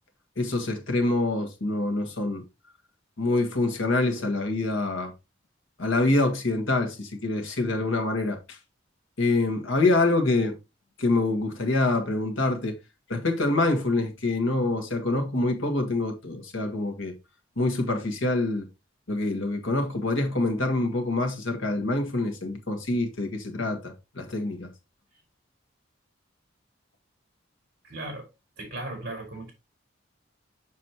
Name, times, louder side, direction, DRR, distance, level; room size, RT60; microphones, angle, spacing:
voice 1, 0.4-2.4 3.2-5.1 5.8-8.6 9.2-10.6 11.0-12.8 13.1-17.1 17.6-18.7 19.1-24.7, left 2 dB, 85° left, 1.8 m, -26 dB
voice 2, 27.8-28.3 28.6-29.5, right 2 dB, 50° right, 4.5 m, -36 dB
7.4 x 6.3 x 3.0 m
head